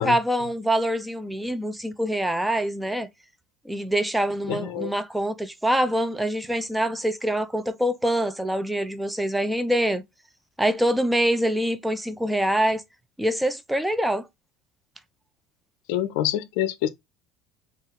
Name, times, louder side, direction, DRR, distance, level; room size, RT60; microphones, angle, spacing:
voice 1, 0.0-3.1 3.7-10.0 10.6-12.8 13.2-14.3, right 1 dB, 5° right, 0.5 m, -25 dB
voice 2, 4.5-4.9 15.9-16.9, left 11 dB, 70° left, 0.5 m, -26 dB
4.1 x 2.4 x 3.3 m
hypercardioid pair, 70°, 0 cm